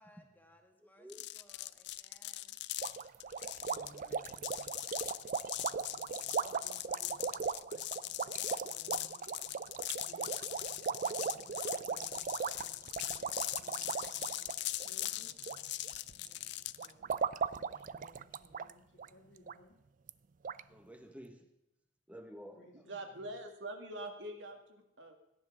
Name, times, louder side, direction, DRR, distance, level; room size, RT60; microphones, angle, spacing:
voice 1, 0.0-2.6, left 1 dB, 10° left, 2 dB, 2.0 m, -64 dB
voice 2, 0.8-1.3 20.7-21.5 22.1-22.8 23.1-23.3, equal, 10° right, 5 dB, 1.4 m, -52 dB
sound 1, 1.1-16.9, left 15 dB, 65° left, 0.4 m, -41 dB
sound 2, 2.8-15.6 15.8-16.3 16.8-18.7 19.0-19.1 19.5-19.6 20.1-20.2 20.4-20.6, right 6 dB, 45° right, 0.4 m, -38 dB
voice 3, 3.6-4.9 5.7-7.5 8.7-9.3 10.0-10.4 11.0-12.3 12.6-14.0 14.8-15.4 16.8-19.8 22.5-23.4, left 1 dB, 90° left, 0 dB, 2.9 m, -61 dB
voice 4, 22.9-25.2, right 1 dB, 85° right, 4 dB, 2.0 m, -44 dB
17.0 x 10.5 x 3.7 m, 0.86 s
head